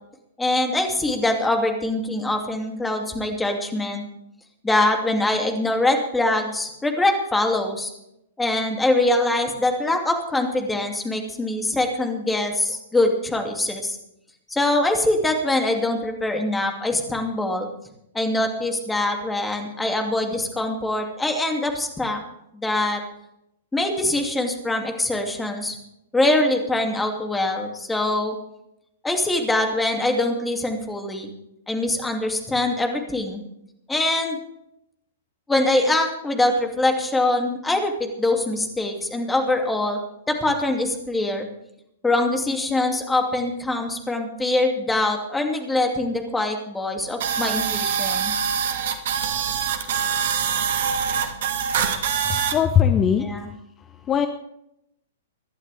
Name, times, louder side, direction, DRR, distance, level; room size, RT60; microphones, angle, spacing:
voice 1, 0.4-4.0 4.6-7.9 8.4-14.0 14.5-17.7 18.1-22.2 22.5-23.0 23.7-25.7 26.1-28.4 29.0-31.3 31.7-33.4 33.9-34.4 35.5-40.0 40.3-41.5 42.0-48.3 53.2-53.5, left 2 dB, 10° left, 3 dB, 2.7 m, -23 dB
sound 1, 47.2-52.5, right 7 dB, 55° right, 1.9 m, -24 dB
voice 2, 52.3-53.3 54.1-54.3, left 8 dB, 25° left, 9 dB, 0.9 m, -19 dB
25.0 x 11.0 x 3.5 m, 0.80 s
figure-of-eight pair, 110°, 0 cm